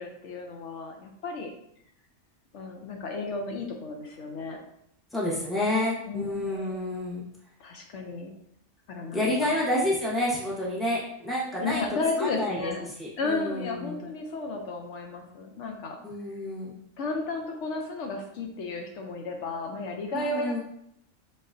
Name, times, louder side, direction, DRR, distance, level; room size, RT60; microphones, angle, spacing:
voice 1, 0.0-1.5 2.5-4.6 6.1-6.8 7.6-8.3 8.9-9.6 11.6-12.8 13.2-16.0 17.0-20.6, left 3 dB, 75° left, 2 dB, 0.9 m, -33 dB
voice 2, 5.1-7.2 9.1-11.8 12.2-14.0 16.0-16.8 20.1-20.6, left 1 dB, ahead, -7 dB, 1.1 m, -29 dB
3.8 x 3.8 x 2.5 m, 0.73 s
omnidirectional pair, 1.3 m